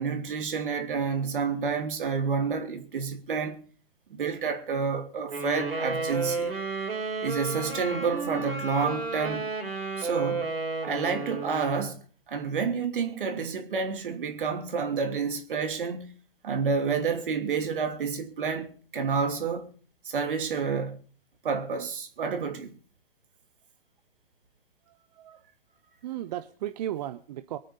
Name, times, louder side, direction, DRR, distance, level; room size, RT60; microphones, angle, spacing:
voice 1, 0.0-3.6 4.1-6.5 7.2-9.5 10.0-10.5 10.8-16.1 16.4-19.7 20.0-21.0 21.4-22.7, right 5 dB, 60° right, 3.0 m, -29 dB
sound 1, 5.3-11.8, right 3 dB, 80° right, 6.1 m, -32 dB
voice 2, 26.0-27.6, right 12 dB, 45° right, 0.9 m, -35 dB
23.0 x 9.1 x 5.3 m
figure-of-eight pair, 115°, 29 cm